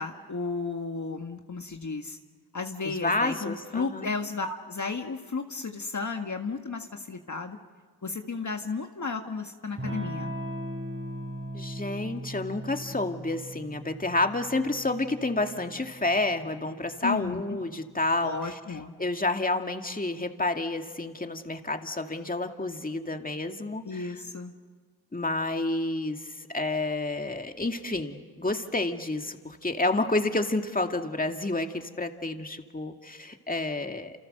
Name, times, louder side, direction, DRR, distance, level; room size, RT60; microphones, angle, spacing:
voice 1, 0.0-2.2 2.5-7.6 8.0-10.3 17.0-17.6 18.2-18.9 23.9-24.5, left 4 dB, 50° left, 4 dB, 1.6 m, -33 dB
voice 2, 2.8-4.1 11.5-18.4 19.0-24.1 25.1-34.1, left 2 dB, 20° left, 5 dB, 2.2 m, -29 dB
Electric guitar / Strum, 9.8-18.1, right 1 dB, 35° right, 4.5 m, -39 dB
29.0 x 28.0 x 6.7 m, 1.5 s
cardioid pair, 45°, 38 cm